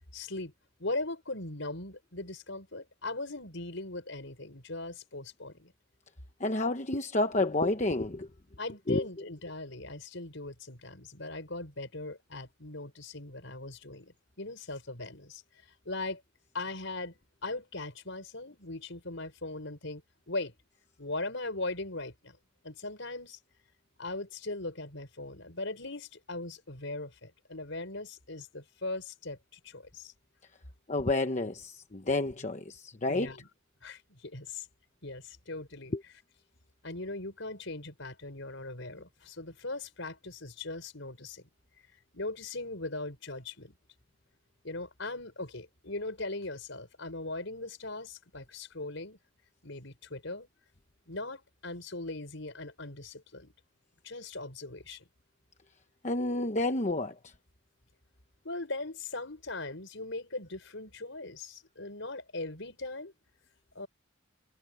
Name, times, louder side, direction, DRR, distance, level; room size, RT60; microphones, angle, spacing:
voice 1, 0.1-0.5 0.8-5.7 8.6-15.4 15.9-16.2 16.5-20.0 20.3-20.5 21.0-22.4 22.6-23.4 24.0-30.1 33.1-33.5 33.8-34.7 35.0-35.9 36.8-41.5 42.1-43.7 44.6-49.2 49.6-50.5 51.1-53.5 54.0-55.0 58.4-63.1 63.7-63.9, left 2 dB, 65° left, 5.6 m, -39 dB
voice 2, 6.4-8.3 8.9-9.0 30.9-33.3 35.9-36.0 56.0-57.3, left 2 dB, 35° left, 1.0 m, -30 dB
head